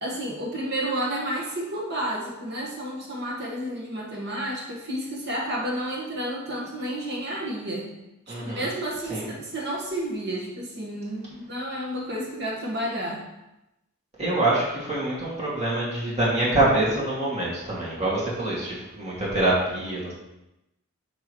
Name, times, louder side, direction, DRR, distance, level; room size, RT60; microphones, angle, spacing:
voice 1, 0.0-7.9 8.3-13.2, right 1 dB, 50° right, -3 dB, 1.7 m, -31 dB
voice 2, 8.3-8.7 9.1-9.3 14.2-20.1, right 2 dB, 30° right, -7 dB, 2.3 m, -25 dB
6.6 x 6.3 x 3.2 m, 0.93 s
head